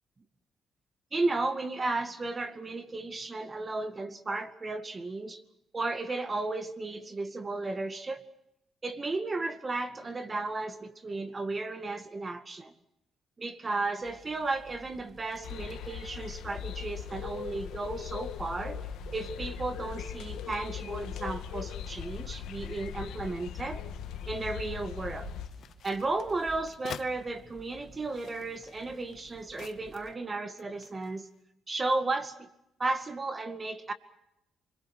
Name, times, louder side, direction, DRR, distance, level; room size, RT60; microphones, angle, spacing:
voice 1, 1.1-5.4 5.7-8.3 8.8-12.7 13.4-18.8 19.1-23.8 24.3-25.3 25.8-31.3 31.7-32.5 32.8-33.9, right 3 dB, 30° right, 9 dB, 2.1 m, -34 dB
sound 1, 14.0-30.2, right 5 dB, 45° right, 1.8 m, -52 dB
sound 2, 15.4-25.5, left 10 dB, 85° left, 1.7 m, -39 dB
sound 3, 25.3-27.1 27.9-30.2 30.6-31.3, left 9 dB, 65° left, 0.9 m, -48 dB
29.0 x 22.0 x 6.3 m, 0.82 s
cardioid pair, 90°, 0 cm